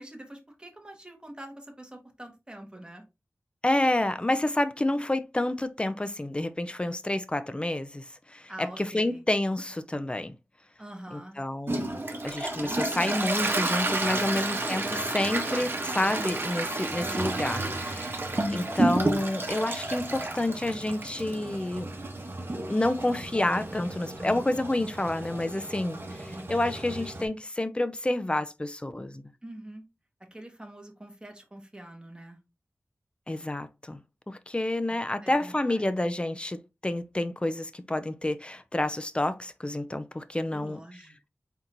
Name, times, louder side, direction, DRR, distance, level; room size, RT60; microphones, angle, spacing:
voice 1, 0.0-3.0 8.5-9.2 10.8-11.4 17.0-17.4 29.4-29.8 30.3-32.4 35.2-35.8 40.5-41.3, right 1 dB, 20° right, 1.5 m, -45 dB
voice 2, 3.6-10.3 11.1-11.9 12.2-21.9 22.7-29.2 33.3-34.0 34.3-40.8, left 1 dB, 20° left, 0.5 m, -29 dB
Toilet flush, 11.7-27.3, right 2 dB, 45° right, 1.2 m, -31 dB
4.4 x 4.0 x 2.6 m
wide cardioid pair, 65°, 5 cm